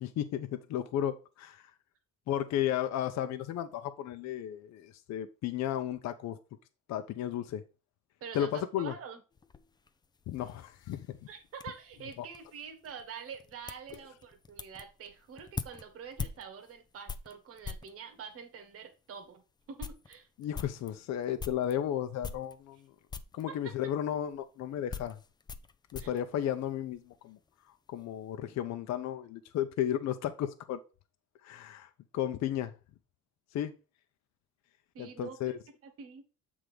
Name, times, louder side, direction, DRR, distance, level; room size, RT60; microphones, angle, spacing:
voice 1, 0.0-1.7 2.3-6.4 6.9-7.6 8.3-8.9 10.3-11.1 20.4-22.9 23.3-25.2 25.9-27.4 27.9-30.8 31.4-32.7 33.5-33.7 35.0-35.5, left 11 dB, 65° left, 0.7 m, -34 dB
voice 2, 8.2-9.2 11.3-19.4 19.7-20.3 23.6-23.9 26.0-26.1 34.9-35.5 35.8-36.2, right 6 dB, 50° right, 1.3 m, -46 dB
sound 1, 9.3-18.0 18.7-18.8 19.2-19.3 19.6-21.8 22.2-22.8 23.1-23.5 24.3-27.2 27.5-28.1, left 5 dB, 15° left, 0.4 m, -44 dB
7.8 x 3.6 x 4.9 m
cardioid pair, 150°, 30 cm